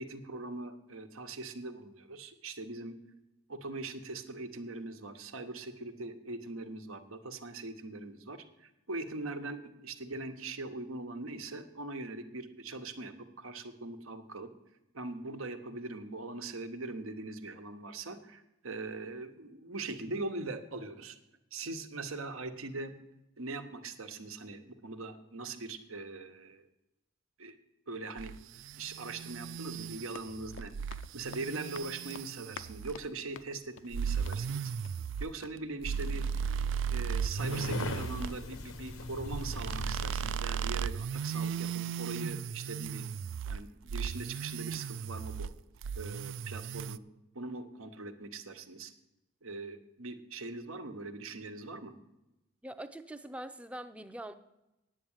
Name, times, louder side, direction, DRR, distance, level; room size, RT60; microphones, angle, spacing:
voice 1, 0.0-3.0 3.5-14.5 14.9-21.2 21.5-22.9 23.4-26.6 27.4-27.6 27.9-28.3 28.7-30.7 31.1-34.7 35.2-36.2 36.9-43.1 43.4-45.5 45.9-47.0 47.3-48.9 49.4-51.9, right 3 dB, 85° right, 7 dB, 1.1 m, -41 dB
sound 1, 28.2-33.1 33.9-38.4 39.3-43.6 43.9-45.5 45.8-47.0, right 7 dB, 65° right, 0.3 m, -36 dB
Run, 29.9-35.2 35.4-35.6, left 6 dB, 70° left, 0.5 m, -51 dB
sound 2, 37.4-40.4, left 2 dB, 90° left, 1.0 m, -39 dB
voice 2, 52.6-54.3, right 1 dB, 5° right, 10 dB, 0.5 m, -43 dB
9.4 x 7.4 x 8.8 m, 0.94 s
head